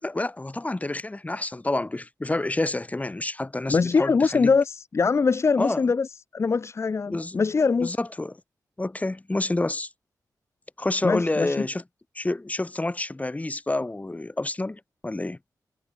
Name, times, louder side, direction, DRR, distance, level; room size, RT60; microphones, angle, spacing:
voice 1, 0.0-4.5 5.6-5.8 7.1-7.4 7.8-8.3 8.8-9.9 10.8-11.8 12.1-15.4, left 2 dB, 20° left, 3.0 m, -28 dB
voice 2, 3.7-6.1 6.3-8.0 11.0-11.7, left 4 dB, 40° left, 0.5 m, -23 dB
wide cardioid pair, 90°, 7 cm